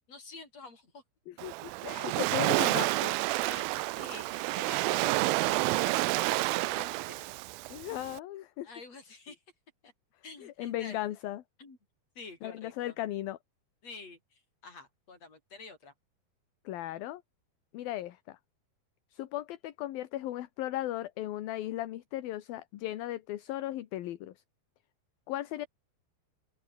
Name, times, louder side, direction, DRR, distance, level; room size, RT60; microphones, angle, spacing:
voice 1, 0.1-1.0 3.4-7.3 8.6-9.4 9.8-9.9 10.2-11.0 11.6-11.8 12.2-13.0 13.8-15.9, left 4 dB, 40° left, 7.5 m, -48 dB
voice 2, 1.3-3.2 7.7-8.7 10.4-11.4 12.4-13.4 16.6-17.2 17.7-18.4 19.1-24.3 25.3-25.7, left 14 dB, 70° left, 2.9 m, -36 dB
Waves surf, 1.4-8.2, right 22 dB, 85° right, 2.1 m, -29 dB
open air
omnidirectional pair, 4.7 m